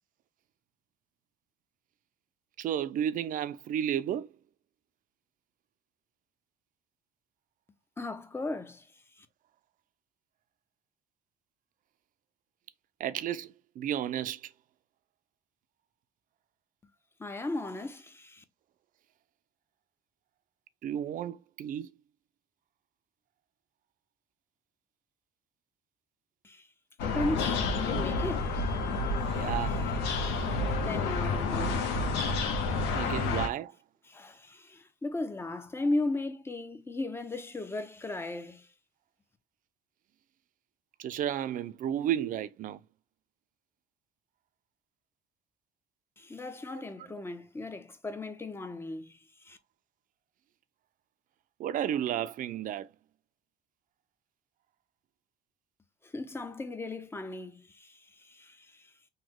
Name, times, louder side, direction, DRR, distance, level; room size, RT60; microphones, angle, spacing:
voice 1, 2.6-4.3 13.0-14.5 20.8-21.9 29.3-29.8 32.9-33.8 41.0-42.8 46.7-46.8 51.6-52.9, right 10 dB, 55° right, 0.4 m, -32 dB
voice 2, 8.0-8.9 9.2-9.3 17.2-18.4 26.4-26.7 27.0-28.5 29.3-29.5 30.2-30.5 30.8-32.1 34.1-38.7 46.2-49.6 56.0-58.9, left 2 dB, 15° left, 0.5 m, -36 dB
sound 1, 27.0-33.5, left 3 dB, 85° left, 0.7 m, -29 dB
3.1 x 2.1 x 3.5 m
cardioid pair, 110°, 17 cm